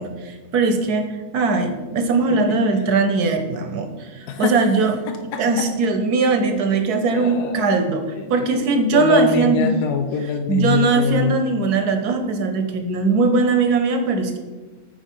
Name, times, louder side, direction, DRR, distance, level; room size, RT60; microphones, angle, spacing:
voice 1, 0.0-4.9 5.4-9.7 10.5-14.4, right 4 dB, 80° right, 6 dB, 1.5 m, -20 dB
voice 2, 4.3-4.6 5.1-5.7 7.1-7.7 8.1-11.3, left 6 dB, 90° left, 6 dB, 1.2 m, -24 dB
9.2 x 4.4 x 4.6 m, 1.3 s
omnidirectional pair, 1.6 m